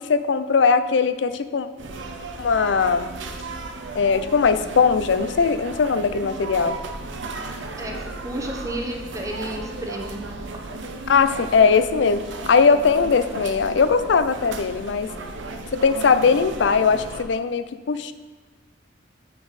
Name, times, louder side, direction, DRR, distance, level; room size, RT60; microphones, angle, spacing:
voice 1, 0.0-1.7 2.4-3.1 3.9-6.8 11.1-15.1 15.7-18.1, left 5 dB, 65° left, 12 dB, 0.4 m, -20 dB
sound 1, 1.8-17.2, right 3 dB, 75° right, 0.8 m, -35 dB
voice 2, 7.8-10.2, right 1 dB, 15° right, 2 dB, 0.8 m, -32 dB
8.2 x 5.9 x 4.1 m, 1.3 s
head